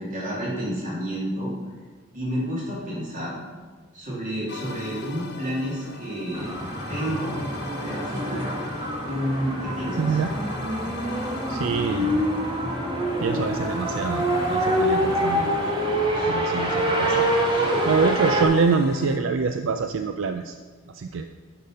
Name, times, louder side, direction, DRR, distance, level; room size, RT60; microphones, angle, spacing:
voice 1, 0.0-1.5 2.1-3.4 3.9-6.5 6.9-7.4 7.8-8.5 9.0-10.2 16.1-16.3, equal, 45° right, -5 dB, 3.1 m, -30 dB
sound 1, 4.5-19.2, left 3 dB, 55° left, 0.8 m, -40 dB
sound 2, 6.3-18.4, right 1 dB, 25° right, 1.3 m, -25 dB
voice 2, 10.0-10.4 11.1-12.2 13.2-15.5 16.2-20.6 20.9-21.3, right 5 dB, 75° right, 8 dB, 0.4 m, -26 dB
10.5 x 5.7 x 5.4 m, 1.4 s
head